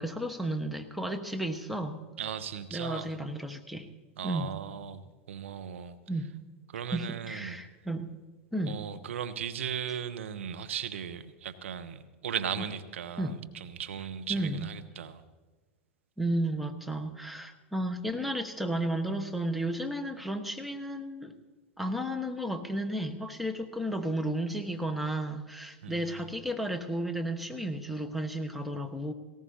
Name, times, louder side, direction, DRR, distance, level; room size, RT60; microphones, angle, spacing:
voice 1, 0.0-2.0 2.7-3.9 4.2-4.5 6.1-6.3 6.9-8.1 8.5-8.8 13.2-13.4 14.3-14.7 16.2-21.3 21.8-29.1, right 1 dB, ahead, 3 dB, 1.3 m, -33 dB
voice 2, 2.2-3.1 4.2-5.0 5.3-6.0 6.7-7.6 8.7-15.2 25.8-26.4, right 8 dB, 75° right, 10 dB, 0.9 m, -37 dB
18.5 x 17.5 x 2.8 m, 1.3 s
hypercardioid pair, 100°, 7 cm